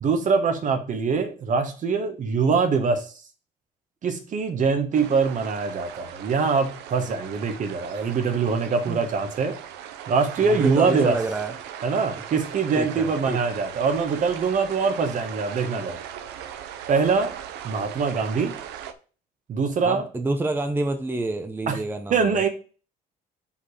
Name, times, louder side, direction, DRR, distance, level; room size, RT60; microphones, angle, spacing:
voice 1, 0.0-3.0 4.0-9.6 10.1-11.2 11.8-16.0 16.9-17.3 17.6-18.5 19.5-20.0 21.7-21.8 22.1-22.5, right 5 dB, 50° right, 7 dB, 1.4 m, -23 dB
sound 1, 4.9-18.9, right 9 dB, 85° right, 0.8 m, -38 dB
voice 2, 10.4-11.5 12.8-13.4 16.3-16.4 19.8-22.4, right 2 dB, 10° right, 6 dB, 0.7 m, -28 dB
5.7 x 4.7 x 4.9 m, 0.37 s
cardioid pair, 110°, 17 cm